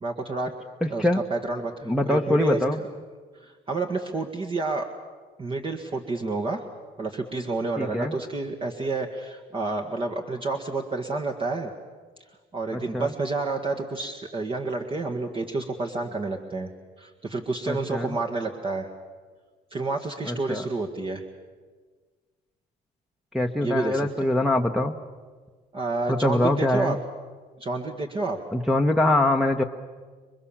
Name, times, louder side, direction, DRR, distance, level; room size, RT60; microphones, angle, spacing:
voice 1, 0.0-0.6 0.9-2.6 3.4-4.9 5.4-6.7 7.0-11.7 12.5-16.7 17.0-18.9 19.7-21.2 23.6-24.3 25.7-27.0 27.6-28.4, right 3 dB, 30° right, 2 dB, 1.8 m, -29 dB
voice 2, 0.8-1.2 1.8-2.8 7.8-8.2 12.7-13.1 17.7-18.1 20.3-20.6 23.3-25.0 26.1-27.0 28.5-29.6, left 1 dB, ahead, 0 dB, 1.2 m, -23 dB
27.5 x 23.0 x 7.4 m, 1.5 s
cardioid pair, 110°, 17 cm